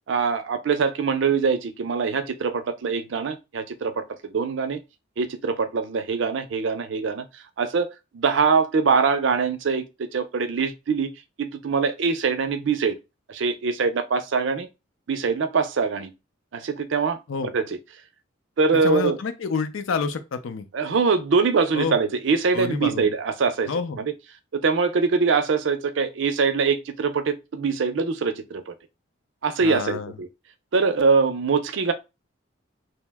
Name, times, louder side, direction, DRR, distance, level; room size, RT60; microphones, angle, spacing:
voice 1, 0.1-4.8 5.2-7.3 7.6-9.8 10.1-11.1 11.4-13.0 13.3-14.7 15.1-16.1 16.5-17.2 17.5-17.8 18.6-19.2 20.7-23.7 24.0-24.1 24.5-28.7 29.4-30.3 30.7-31.9, right 5 dB, 65° right, 0.4 m, -23 dB
voice 2, 18.8-20.7 21.7-22.0 22.5-23.1 23.7-24.0 29.6-30.2, left 5 dB, 75° left, 0.5 m, -28 dB
2.8 x 2.0 x 3.4 m
head